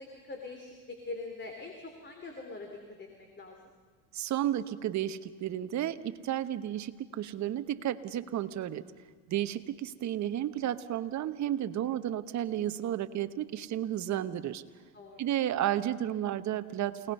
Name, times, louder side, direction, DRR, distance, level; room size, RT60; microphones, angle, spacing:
voice 1, 0.0-2.7 3.0-3.7 9.3-9.4 14.9-15.2, left 3 dB, 25° left, 3 dB, 3.4 m, -43 dB
voice 2, 4.1-8.8 9.3-14.6 15.2-17.1, right 11 dB, 45° right, 11 dB, 1.2 m, -32 dB
28.5 x 18.5 x 5.6 m, 1.5 s
supercardioid pair, 95°, 41 cm